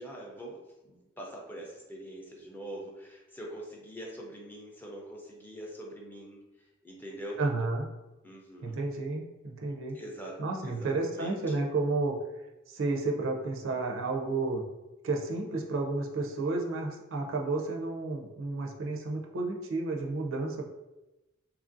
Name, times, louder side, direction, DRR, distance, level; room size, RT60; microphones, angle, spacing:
voice 1, 0.0-7.4 8.2-8.8 9.9-11.5, right 1 dB, 10° left, -2 dB, 0.4 m, -44 dB
voice 2, 7.4-7.9 8.6-10.0 10.4-12.2 12.7-14.6 15.0-20.7, right 3 dB, 65° right, 1 dB, 0.4 m, -31 dB
2.9 x 2.5 x 2.5 m, 1.0 s
head